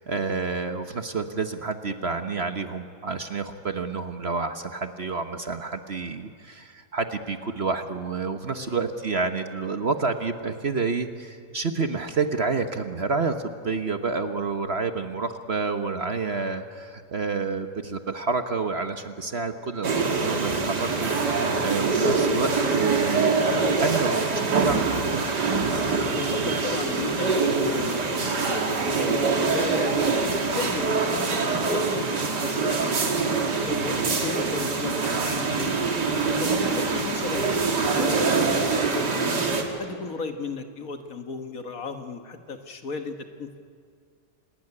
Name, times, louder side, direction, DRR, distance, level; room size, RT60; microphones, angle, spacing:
voice 1, 0.0-23.4 23.8-25.2, right 4 dB, 45° right, 8 dB, 1.2 m, -29 dB
sound 1, 19.8-39.6, right 4 dB, 80° right, 2.8 m, -24 dB
voice 2, 26.1-33.0 33.6-39.4 39.8-43.6, left 4 dB, 60° left, 7 dB, 1.8 m, -36 dB
28.0 x 19.0 x 9.7 m, 2.2 s
omnidirectional pair, 1.8 m